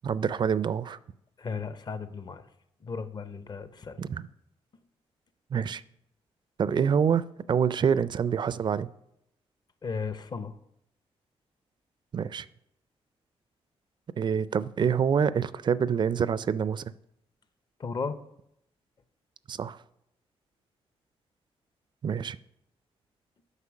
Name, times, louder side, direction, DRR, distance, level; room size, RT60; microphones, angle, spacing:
voice 1, 0.0-1.0 4.0-4.3 5.5-5.8 6.6-8.9 12.1-12.5 14.2-16.8 19.5-19.8 22.0-22.4, right 7 dB, 45° right, 17 dB, 0.4 m, -26 dB
voice 2, 1.4-2.4 2.8-4.0 9.8-10.6 17.8-18.2, left 5 dB, 40° left, 12 dB, 0.7 m, -35 dB
8.2 x 5.1 x 6.2 m, 0.79 s
cardioid pair, 90°, 11 cm